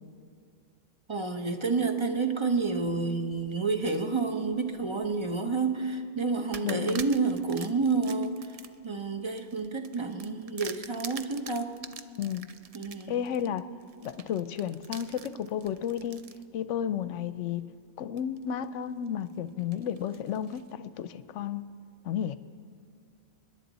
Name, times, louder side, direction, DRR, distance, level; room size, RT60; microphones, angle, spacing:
voice 1, 1.1-8.3 8.8-11.7 12.7-13.2, right 4 dB, 25° right, 5 dB, 0.8 m, -29 dB
sound 1, 2.6-3.9 4.4-5.4 5.8-6.0 6.5-16.4 17.0-17.1 18.2-18.6 19.1-20.7, right 6 dB, 75° right, 0.3 m, -46 dB
voice 2, 6.6-7.1 12.2-12.5 13.1-13.7 14.0-16.2 16.5-17.7 18.0-21.7 22.0-22.4, left 9 dB, 75° left, 14 dB, 0.9 m, -32 dB
29.0 x 11.0 x 4.1 m, 2.2 s
omnidirectional pair, 1.3 m